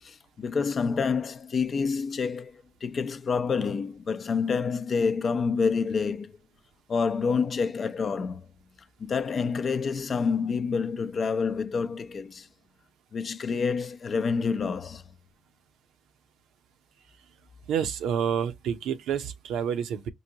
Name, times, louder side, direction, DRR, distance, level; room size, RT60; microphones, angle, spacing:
voice 1, 0.0-6.3 6.9-8.5 9.0-12.5 13.1-15.0, left 5 dB, 50° left, 0.5 m, -28 dB
voice 2, 17.7-20.1, right 8 dB, 75° right, 0.6 m, -28 dB
4.8 x 2.5 x 2.7 m
hypercardioid pair, 50°, 0 cm